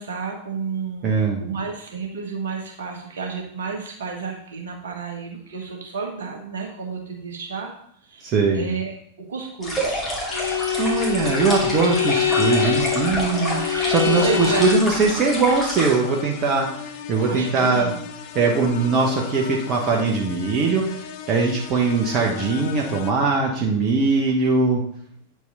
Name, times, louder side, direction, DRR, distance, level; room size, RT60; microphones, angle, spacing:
voice 1, 0.0-1.1 1.4-7.7 8.0-8.9 9.3-10.0 14.1-14.7 17.3-18.0, right 5 dB, 65° right, 1 dB, 1.6 m, -31 dB
voice 2, 1.0-1.4 8.2-8.7 10.8-17.9 18.3-24.8, right 4 dB, 35° right, 0 dB, 1.1 m, -21 dB
sound 1, 9.6-16.0, equal, 15° left, 2.5 m, -28 dB
Bowed string instrument, 10.3-15.0, left 9 dB, 80° left, 0.7 m, -24 dB
sound 2, 12.1-23.1, left 7 dB, 45° left, 0.6 m, -37 dB
8.5 x 4.7 x 4.1 m, 0.67 s
figure-of-eight pair, 90°, 0 cm